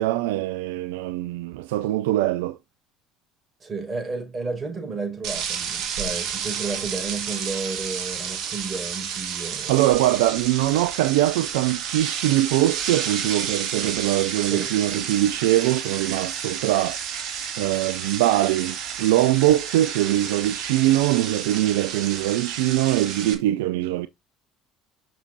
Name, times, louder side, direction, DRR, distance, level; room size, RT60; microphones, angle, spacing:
voice 1, 0.0-2.6 9.7-17.0 17.6-24.1, right 15 dB, 75° right, 0.4 m, -22 dB
voice 2, 3.6-9.8 14.5-14.7, right 4 dB, 35° right, 5.6 m, -32 dB
sound 1, 5.2-23.3, right 8 dB, 60° right, 2.3 m, -31 dB
7.5 x 6.5 x 2.7 m
hypercardioid pair, 65°, 0 cm